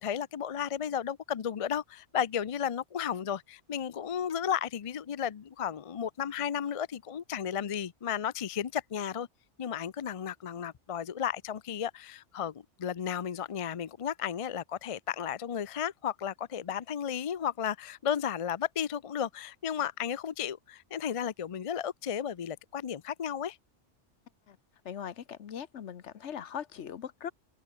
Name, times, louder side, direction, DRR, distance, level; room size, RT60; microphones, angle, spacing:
voice 1, 0.0-9.3 9.6-12.5 12.8-23.6, left 8 dB, 45° left, 0.4 m, -33 dB
voice 2, 24.8-27.3, left 8 dB, 80° left, 1.2 m, -40 dB
omnidirectional pair, 1.2 m